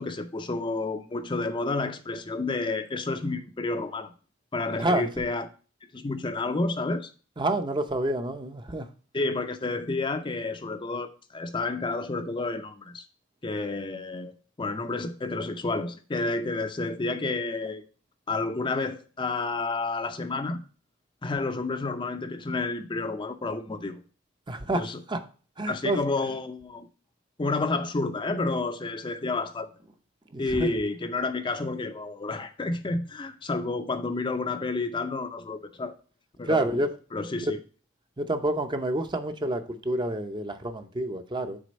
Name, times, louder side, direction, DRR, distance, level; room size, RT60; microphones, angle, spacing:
voice 1, 0.0-4.1 4.5-5.5 5.9-7.1 9.1-13.0 13.4-17.8 18.3-20.6 21.2-24.0 24.7-25.0 25.7-26.9 27.4-29.7 30.4-36.0 36.4-37.6, left 3 dB, 25° left, 0.5 m, -30 dB
voice 2, 4.7-5.1 7.4-8.9 24.5-25.3 25.6-26.0 30.3-30.7 36.5-36.9 37.4-37.5 38.2-41.6, right 1 dB, 25° right, 0.6 m, -28 dB
6.3 x 3.8 x 5.2 m
head